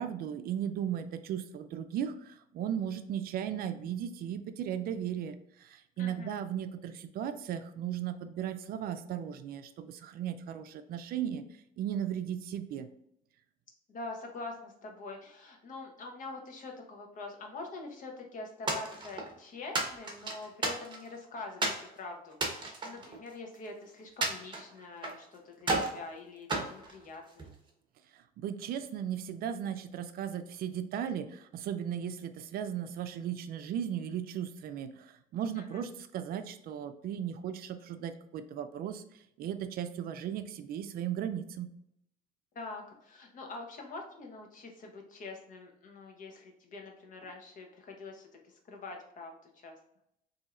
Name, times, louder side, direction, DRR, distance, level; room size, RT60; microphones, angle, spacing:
voice 1, 0.0-11.4 11.8-12.9 28.1-39.0 39.4-41.7, right 9 dB, 65° right, 10 dB, 0.4 m, -36 dB
voice 2, 6.0-6.4 13.9-22.4 22.8-27.5 35.5-35.8 42.5-49.8, left 3 dB, 50° left, 2 dB, 0.9 m, -45 dB
sound 1, 18.7-19.3 19.7-21.2 21.6-21.9 22.3-23.7 24.2-25.2 25.6-26.0 26.5-27.5, right 2 dB, 25° right, 0.9 m, -33 dB
4.1 x 2.7 x 2.4 m, 0.76 s
cardioid pair, 110°, 17 cm